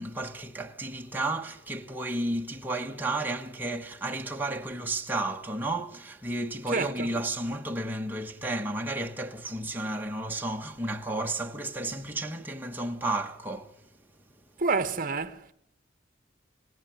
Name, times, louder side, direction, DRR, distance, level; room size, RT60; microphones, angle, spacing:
voice 1, 0.0-13.7, right 2 dB, 10° right, 1.4 m, -32 dB
voice 2, 6.7-7.1 14.6-15.5, right 4 dB, 45° right, 1.1 m, -28 dB
28.0 x 17.0 x 9.3 m
head